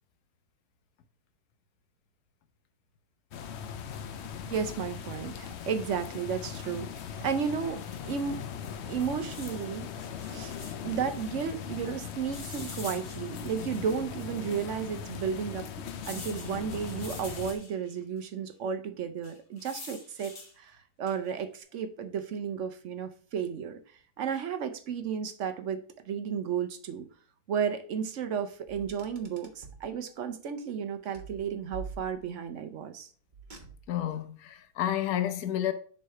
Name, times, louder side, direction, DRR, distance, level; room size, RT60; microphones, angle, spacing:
sound 1, 3.3-17.5, left 8 dB, 60° left, 0.8 m, -40 dB
voice 1, 4.5-8.4 8.9-9.9 10.2-10.5 10.8-15.7 16.0-23.8 24.2-27.1 27.5-33.1, right 7 dB, 60° right, 0.9 m, -33 dB
sound 2, 6.4-6.9 7.9-8.3 9.2-11.0 12.3-13.9 14.6-14.7 16.0-17.9 19.2-20.5 21.1-21.4, left 3 dB, 40° left, 1.4 m, -46 dB
Car, 28.7-29.9 31.1-32.5 33.3-34.1, right 5 dB, 35° right, 1.2 m, -45 dB
voice 2, 33.9-35.7, left 11 dB, 80° left, 1.2 m, -30 dB
6.9 x 3.3 x 5.6 m
omnidirectional pair, 1.5 m